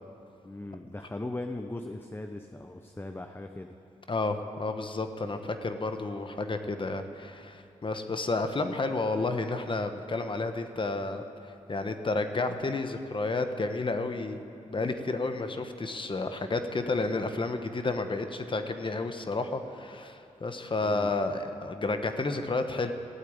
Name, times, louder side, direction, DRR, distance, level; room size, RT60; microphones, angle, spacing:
voice 1, 0.4-3.8 20.8-21.1, left 2 dB, 15° left, 5 dB, 0.8 m, -39 dB
voice 2, 4.1-14.4 14.7-22.9, left 3 dB, 40° left, 7 dB, 1.3 m, -31 dB
16.0 x 8.5 x 8.7 m, 2.6 s
cardioid pair, 60°, 14 cm